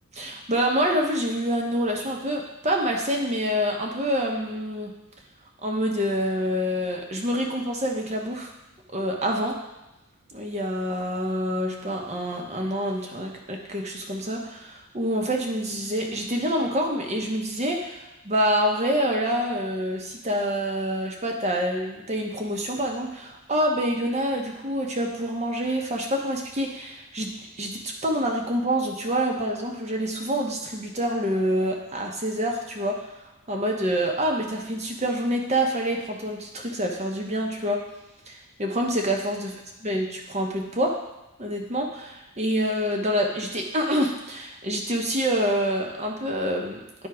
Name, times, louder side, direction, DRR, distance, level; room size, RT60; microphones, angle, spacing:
voice 1, 0.1-4.9 5.6-8.5 8.9-9.6 10.3-33.0 33.5-37.8 38.3-39.5 39.8-41.0 41.4-47.1, equal, 30° right, 1 dB, 1.0 m, -27 dB
10.5 x 3.6 x 4.9 m, 0.96 s
head